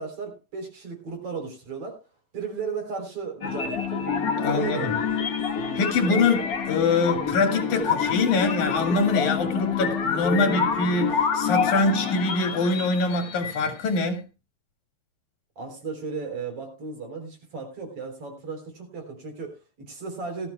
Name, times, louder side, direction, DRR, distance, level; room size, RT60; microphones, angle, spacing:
voice 1, 0.0-2.0 2.3-5.2 5.5-5.6 15.6-20.5, right 5 dB, 50° right, 4.6 m, -35 dB
sound 1, 3.4-14.0, left 6 dB, 55° left, 1.0 m, -27 dB
voice 2, 4.4-4.9 5.8-14.2, left 3 dB, 85° left, 3.5 m, -24 dB
18.5 x 13.5 x 2.3 m
omnidirectional pair, 3.3 m